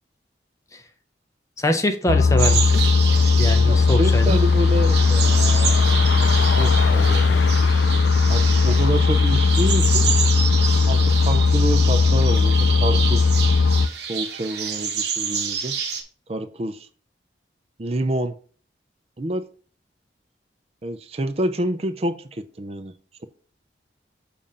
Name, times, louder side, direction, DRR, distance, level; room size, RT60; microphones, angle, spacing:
voice 1, 1.6-2.8 3.4-4.4, left 1 dB, 15° left, 0.5 m, -24 dB
sound 1, 2.1-13.9, left 4 dB, 85° left, 0.4 m, -17 dB
sound 2, 2.4-16.0, right 6 dB, 70° right, 0.9 m, -28 dB
voice 2, 3.7-7.6 8.3-10.1 10.9-13.3 14.1-15.8 16.3-16.9 17.8-18.4 19.2-19.5 20.8-22.9, right 1 dB, 35° right, 0.5 m, -28 dB
6.9 x 2.5 x 5.4 m
head